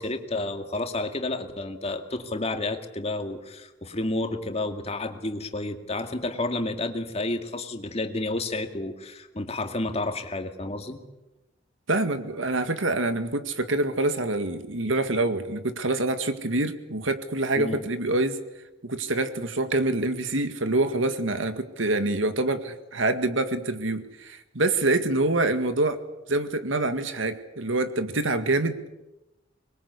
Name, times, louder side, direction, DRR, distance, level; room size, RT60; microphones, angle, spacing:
voice 1, 0.0-11.0 17.6-17.8, left 2 dB, 35° left, 6 dB, 2.2 m, -30 dB
voice 2, 11.9-18.4 18.8-26.0 26.3-28.9, right 2 dB, 85° right, 9 dB, 2.0 m, -26 dB
25.0 x 22.0 x 8.4 m, 0.96 s
head